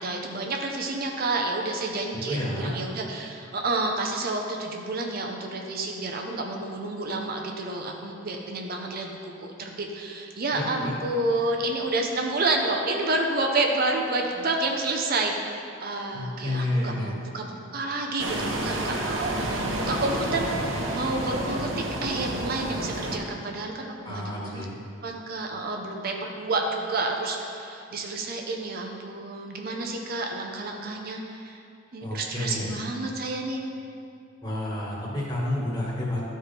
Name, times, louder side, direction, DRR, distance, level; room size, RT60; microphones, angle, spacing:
voice 1, 0.0-24.7 25.0-31.6 31.9-33.6, right 2 dB, 50° right, 2 dB, 0.7 m, -29 dB
voice 2, 2.3-2.7 10.5-10.9 16.1-17.1 24.0-24.8 32.0-32.7 34.4-36.2, left 1 dB, 20° left, -5 dB, 1.5 m, -30 dB
sound 1, 18.2-23.2, right 1 dB, 90° right, 0.9 m, -30 dB
12.5 x 4.4 x 3.3 m, 2.5 s
head